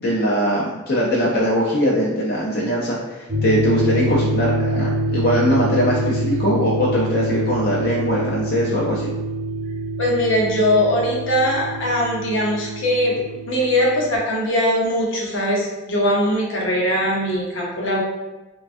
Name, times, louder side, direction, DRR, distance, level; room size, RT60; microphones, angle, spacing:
voice 1, 0.0-9.1, equal, 50° left, -5 dB, 0.5 m, -21 dB
sound 1, 3.3-14.2, right 1 dB, 45° right, 0.8 m, -25 dB
voice 2, 10.0-13.2 13.5-18.0, left 1 dB, 80° left, -3 dB, 0.8 m, -20 dB
3.2 x 2.2 x 2.5 m, 1.1 s
head